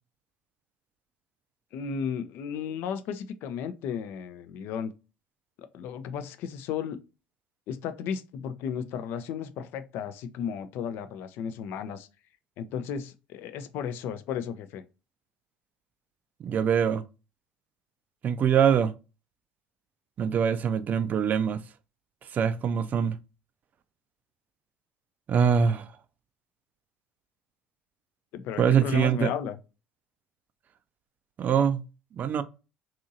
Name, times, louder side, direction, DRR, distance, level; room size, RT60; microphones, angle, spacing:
voice 1, 1.7-4.9 5.6-7.0 7.7-12.1 12.6-14.8 28.3-29.6, left 7 dB, 55° left, 0.4 m, -34 dB
voice 2, 16.4-17.0 18.2-18.9 20.2-21.6 22.3-23.2 25.3-25.9 28.6-29.3 31.4-31.8 32.2-32.4, right 7 dB, 40° right, 0.3 m, -23 dB
2.7 x 2.6 x 2.6 m
figure-of-eight pair, 60°, 4 cm